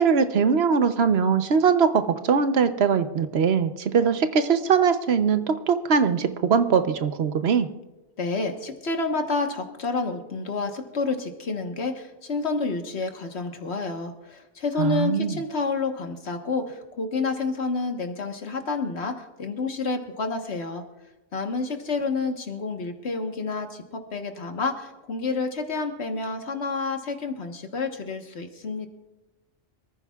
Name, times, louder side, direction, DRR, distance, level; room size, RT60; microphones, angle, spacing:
voice 1, 0.0-7.7 14.8-15.4, right 6 dB, 75° right, 10 dB, 1.1 m, -21 dB
voice 2, 8.2-20.8 21.3-28.9, left 3 dB, 85° left, 4 dB, 1.6 m, -29 dB
26.0 x 14.5 x 2.4 m, 1.1 s
omnidirectional pair, 1.1 m